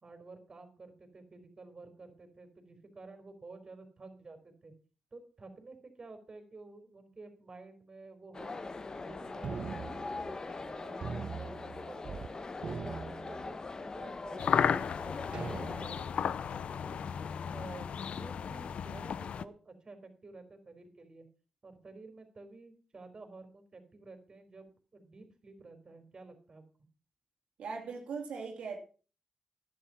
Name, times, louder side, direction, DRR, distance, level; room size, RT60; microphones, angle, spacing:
voice 1, 0.0-4.7 5.1-12.5 12.8-21.3 21.6-26.6, right 3 dB, 40° right, 4.2 m, -52 dB
sound 1, 8.3-15.9, left 3 dB, 40° left, 1.3 m, -42 dB
sound 2, 9.4-10.7 11.0-12.3 12.6-13.9 14.5-14.6 15.3-16.2, right 5 dB, 65° right, 0.8 m, -42 dB
sound 3, 14.4-19.4, left 7 dB, 75° left, 0.6 m, -34 dB
voice 2, 27.6-28.8, right 5 dB, 85° right, 2.7 m, -39 dB
11.5 x 10.5 x 5.9 m
cardioid pair, 70°, 2 cm